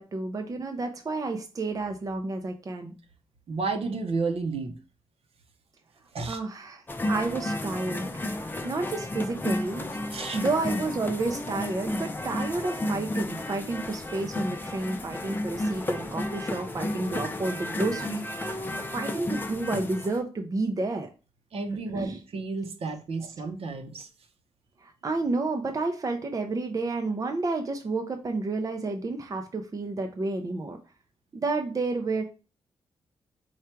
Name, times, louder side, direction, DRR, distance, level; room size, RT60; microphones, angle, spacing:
voice 1, 0.0-2.9 6.3-8.1 8.6-9.9 10.3-21.1 21.9-22.2 23.2-23.3 24.8-30.8 31.3-32.2, right 3 dB, 30° right, 0.5 m, -30 dB
voice 2, 3.5-4.7 6.1-6.4 10.1-10.4 21.5-24.1, right 4 dB, 65° right, 0.8 m, -31 dB
sound 1, 6.9-20.2, left 1 dB, 20° left, 0.5 m, -32 dB
4.5 x 2.4 x 4.4 m
cardioid pair, 105°, 11 cm